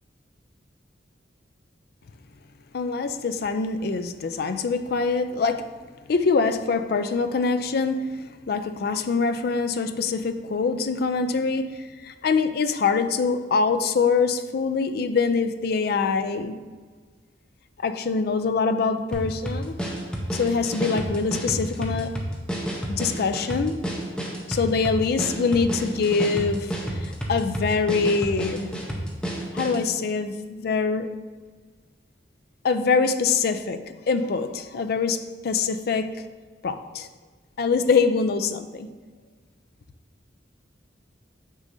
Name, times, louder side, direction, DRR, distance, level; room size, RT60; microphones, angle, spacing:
voice 1, 2.7-5.6 6.1-16.6 17.8-19.8 20.3-22.1 22.9-23.8 24.5-28.7 29.5-31.1 32.6-36.3 36.6-37.1 37.6-38.9, left 4 dB, 60° left, 9 dB, 0.4 m, -24 dB
sound 1, 19.1-29.9, right 1 dB, 5° left, 0.8 m, -30 dB
6.2 x 6.2 x 2.7 m, 1.4 s
head